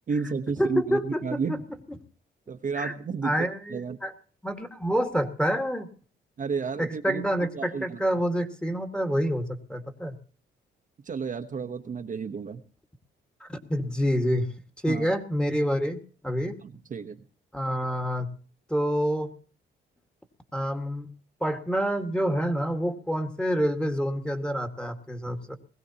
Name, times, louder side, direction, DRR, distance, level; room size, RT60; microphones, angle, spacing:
voice 1, 0.1-1.6 2.5-4.0 6.4-7.3 7.5-8.0 11.0-12.6 14.9-15.1 16.6-17.2, right 5 dB, 40° right, 6 dB, 1.0 m, -32 dB
voice 2, 0.6-1.6 1.9-2.0 2.7-2.9 3.2-4.1 4.4-5.9 6.8-10.1 13.4-14.5 14.8-16.0 16.2-16.5 17.5-18.3 18.7-19.3 20.5-21.1 21.4-25.5, equal, 5° left, 6 dB, 1.8 m, -27 dB
20.5 x 16.0 x 2.9 m, 0.42 s
cardioid pair, 90°, 20 cm